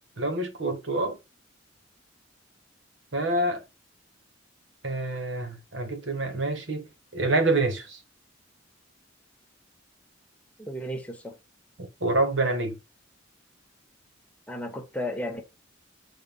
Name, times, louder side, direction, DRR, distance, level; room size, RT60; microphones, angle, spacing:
voice 1, 0.2-1.2 3.1-3.6 4.8-8.0 11.8-12.8, right 2 dB, 70° right, 1.5 m, -27 dB
voice 2, 10.6-11.4 14.5-15.4, left 1 dB, 5° left, 1.3 m, -34 dB
7.0 x 4.2 x 5.3 m
head